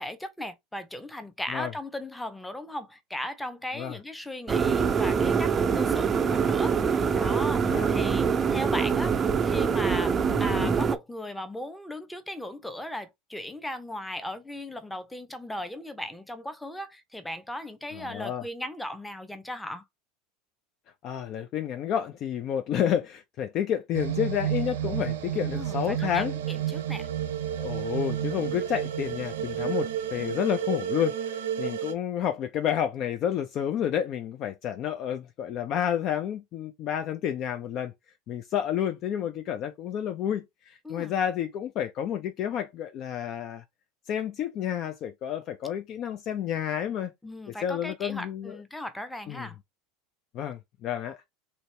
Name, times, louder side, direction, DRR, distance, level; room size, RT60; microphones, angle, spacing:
voice 1, 0.0-9.1 9.4-10.1 10.4-19.8 25.5-27.1 40.8-41.1 47.2-49.6, left 1 dB, 5° left, 0.7 m, -37 dB
sound 1, 4.5-11.0, right 6 dB, 30° right, 0.4 m, -24 dB
voice 2, 10.3-10.7 17.9-18.4 21.0-26.3 27.6-37.9 38.3-43.6 44.1-47.1 47.6-48.6 49.3-49.5 50.3-51.2, left 9 dB, 50° left, 0.4 m, -30 dB
sound 2, 23.9-31.9, right 10 dB, 75° right, 0.6 m, -31 dB
3.0 x 2.7 x 3.2 m
hypercardioid pair, 85°, 0 cm